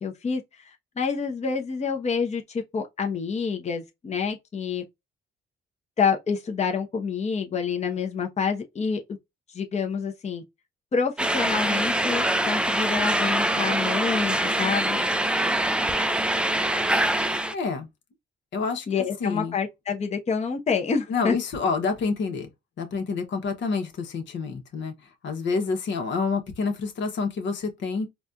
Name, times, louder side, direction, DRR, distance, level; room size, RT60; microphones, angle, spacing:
voice 1, 0.0-4.8 6.0-9.0 9.5-10.4 10.9-15.0 18.9-21.4, left 5 dB, 35° left, 0.8 m, -27 dB
sound 1, 11.2-17.5, right 1 dB, 5° right, 0.4 m, -24 dB
voice 2, 17.5-17.9 18.5-18.9 19.2-19.5 21.1-22.5 22.8-24.9 25.2-28.1, left 4 dB, 70° left, 1.1 m, -28 dB
4.1 x 2.3 x 2.5 m
cardioid pair, 90°, 20 cm